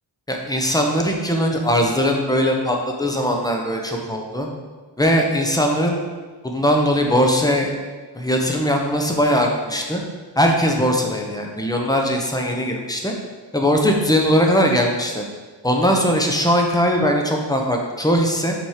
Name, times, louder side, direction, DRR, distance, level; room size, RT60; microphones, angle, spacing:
voice 1, 0.3-4.5 5.0-6.0 6.4-7.7 8.1-10.0 10.4-13.1 13.5-15.2 15.6-18.5, equal, 10° left, 1 dB, 0.7 m, -20 dB
6.0 x 4.4 x 4.8 m, 1.4 s
wide cardioid pair, 175°, 44 cm